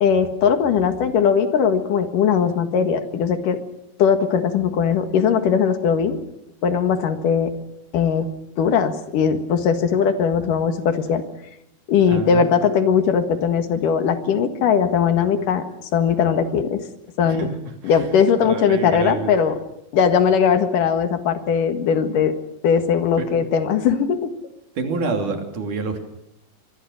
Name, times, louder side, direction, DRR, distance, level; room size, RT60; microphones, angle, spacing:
voice 1, 0.0-3.6 4.0-6.2 6.6-7.5 7.9-8.3 8.6-11.2 11.9-15.6 15.9-16.9 17.2-17.5 17.8-19.6 19.9-22.3 22.6-24.3, left 7 dB, 75° left, 8 dB, 3.3 m, -19 dB
voice 2, 12.1-12.5 14.6-14.8 17.2-17.5 17.8-17.9 18.4-19.3 23.2-23.4 24.8-26.0, right 4 dB, 65° right, 5 dB, 4.4 m, -27 dB
25.5 x 22.0 x 6.5 m, 0.81 s
omnidirectional pair, 3.8 m